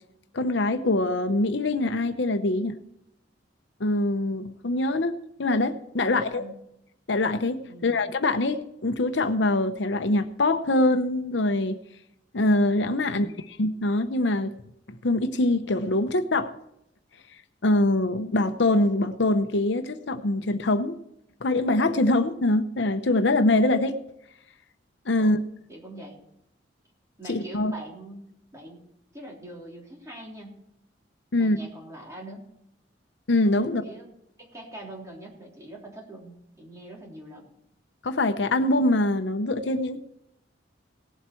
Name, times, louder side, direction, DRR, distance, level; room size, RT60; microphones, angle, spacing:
voice 1, 0.3-2.8 3.8-6.4 7.1-11.8 12.3-13.3 13.6-14.5 14.9-16.5 17.6-21.0 21.4-23.9 25.1-25.4 27.3-27.7 31.3-31.6 33.3-33.8 38.0-40.0, left 2 dB, 70° left, 9 dB, 0.8 m, -24 dB
voice 2, 6.0-6.5 7.7-8.0 13.0-13.4 25.1-25.4 25.7-26.2 27.2-28.8 29.1-30.6 31.3-32.5 33.6-34.0 34.4-37.5, right 1 dB, 15° right, -2 dB, 3.3 m, -43 dB
18.0 x 8.0 x 4.5 m, 0.79 s
head